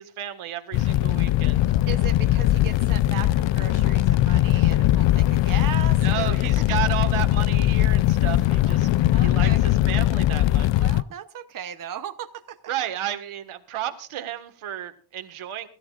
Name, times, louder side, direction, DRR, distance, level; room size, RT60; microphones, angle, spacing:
voice 1, 0.0-1.6 6.0-8.9 9.1-10.8 12.7-15.7, right 12 dB, 80° right, 8 dB, 1.8 m, -32 dB
Fire, 0.7-11.0, left 14 dB, 65° left, 0.5 m, -20 dB
voice 2, 1.9-6.6 7.0-7.1 9.1-9.6 10.8-12.6, right 10 dB, 40° right, 7 dB, 0.9 m, -37 dB
23.5 x 13.5 x 2.5 m, 0.41 s
cardioid pair, 140°, 49 cm